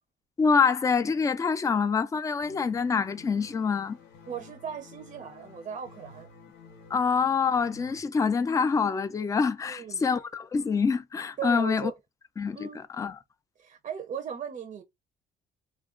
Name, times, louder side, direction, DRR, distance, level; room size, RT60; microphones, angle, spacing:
voice 1, 0.4-4.0 6.9-11.9 12.4-13.2, left 5 dB, 20° left, 0.4 m, -26 dB
sound 1, 2.4-8.0, left 4 dB, 80° left, 0.9 m, -51 dB
voice 2, 4.3-6.3 9.6-10.0 11.4-11.9 12.5-12.8 13.6-14.8, right 7 dB, 45° right, 0.5 m, -37 dB
2.3 x 2.2 x 3.6 m
cardioid pair, 110°, 17 cm